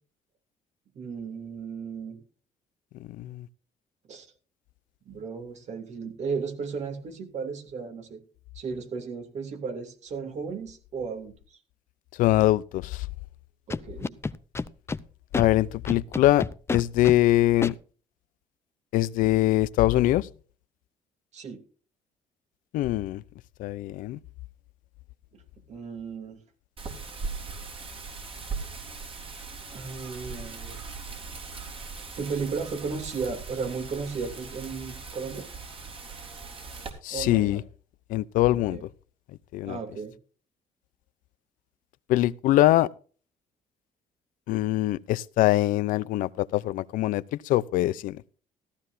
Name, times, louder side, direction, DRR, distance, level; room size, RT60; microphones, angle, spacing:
voice 1, 0.9-2.2 4.1-4.3 5.1-8.2 8.5-11.6 13.7-14.2 21.3-21.6 25.3-25.4 25.7-26.4 29.7-30.8 32.2-35.5 37.1-37.6 38.5-38.8 39.6-40.1, right 5 dB, 55° right, 2.9 m, -35 dB
voice 2, 12.2-13.1 15.3-16.5 16.7-17.7 18.9-20.3 22.7-23.2 23.6-24.2 37.0-37.6 38.1-38.8 39.5-39.8 42.1-42.9 44.5-48.2, left 15 dB, 85° left, 0.5 m, -23 dB
Scratching (performance technique), 13.7-15.0 15.3-15.5 15.9-17.2 17.6-17.7, left 4 dB, 20° left, 0.6 m, -29 dB
Wind, 26.8-36.9, right 4 dB, 40° right, 3.8 m, -39 dB
14.5 x 13.5 x 2.7 m
cardioid pair, 105°, 14 cm